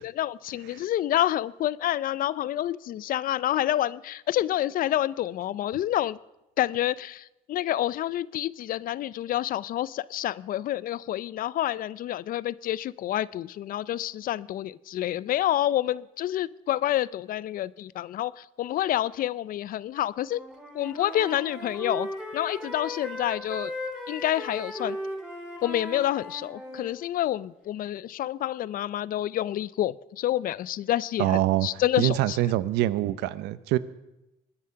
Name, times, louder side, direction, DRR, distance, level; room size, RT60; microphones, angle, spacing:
voice 1, 0.0-6.2 6.6-20.4 20.7-23.7 24.1-25.0 25.6-32.4, left 13 dB, 55° left, 21 dB, 0.5 m, -28 dB
Wind instrument woodwind instrument, 20.2-26.9, equal, 5° right, 3.3 m, -37 dB
voice 2, 31.2-31.7 32.0-33.8, right 15 dB, 90° right, 17 dB, 0.7 m, -24 dB
21.5 x 10.0 x 5.7 m, 0.95 s
cardioid pair, 110°, 17 cm